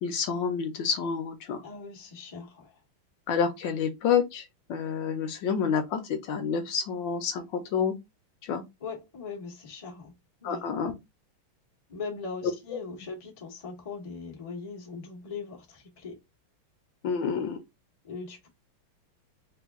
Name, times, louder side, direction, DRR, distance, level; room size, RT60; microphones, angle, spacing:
voice 1, 0.0-1.6 3.3-7.9 8.4-8.6 10.4-10.9 17.0-17.6, left 6 dB, 70° left, 1.2 m, -28 dB
voice 2, 1.6-2.7 8.8-10.1 10.4-10.6 11.9-16.2 18.0-18.5, left 4 dB, 50° left, 0.4 m, -40 dB
3.4 x 2.3 x 3.4 m
omnidirectional pair, 2.4 m